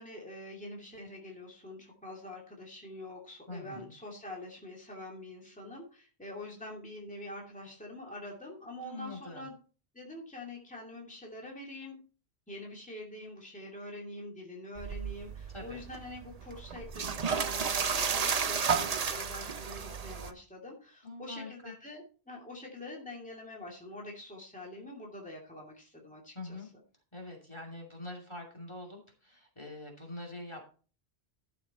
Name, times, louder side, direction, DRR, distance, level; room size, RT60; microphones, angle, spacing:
voice 1, 0.0-9.6 9.9-12.0 12.5-26.6, left 1 dB, 5° left, -2 dB, 2.5 m, -45 dB
voice 2, 3.5-3.9 8.8-9.5 15.5-15.8 21.0-21.7 26.3-26.7 27.1-30.7, left 2 dB, 25° left, 1 dB, 2.7 m, -44 dB
sound 1, 14.8-20.3, right 6 dB, 40° right, 0.8 m, -33 dB
12.5 x 6.9 x 4.1 m, 0.38 s
omnidirectional pair, 1.1 m